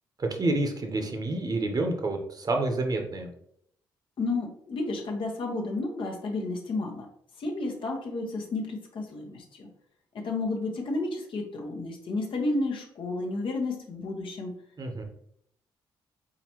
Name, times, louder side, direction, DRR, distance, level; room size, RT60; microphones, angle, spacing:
voice 1, 0.2-3.3 14.8-15.0, right 2 dB, 35° right, 3 dB, 1.0 m, -28 dB
voice 2, 4.2-7.1 7.4-9.7 10.1-14.5, left 2 dB, 50° left, 1 dB, 1.0 m, -31 dB
4.2 x 3.8 x 3.0 m, 0.69 s
figure-of-eight pair, 40°, 11 cm